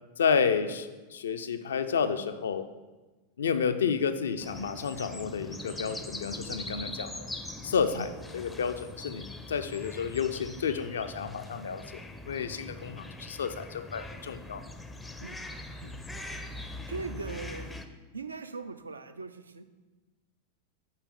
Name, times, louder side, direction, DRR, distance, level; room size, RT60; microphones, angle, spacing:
voice 1, 0.2-2.7 3.4-7.3 7.6-11.8 12.3-14.6, left 6 dB, 65° left, 9 dB, 0.4 m, -30 dB
sound 1, 4.4-17.9, left 2 dB, 5° left, 0.4 m, -42 dB
voice 2, 16.9-17.7 18.1-19.6, right 4 dB, 75° right, 9 dB, 0.4 m, -39 dB
5.7 x 4.2 x 5.3 m, 1.2 s
figure-of-eight pair, 90°, 0 cm